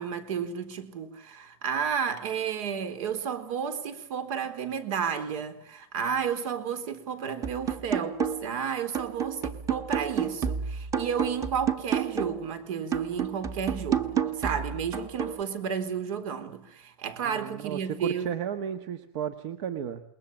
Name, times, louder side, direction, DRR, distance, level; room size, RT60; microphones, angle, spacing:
voice 1, 0.0-18.3, right 7 dB, 80° right, 3.9 m, -32 dB
sound 1, 7.4-8.6 8.9-12.5 12.9-15.4, right 8 dB, 20° right, 1.1 m, -30 dB
voice 2, 17.2-20.0, right 9 dB, 60° right, 1.6 m, -34 dB
28.0 x 21.0 x 7.4 m
supercardioid pair, 175°, 17 cm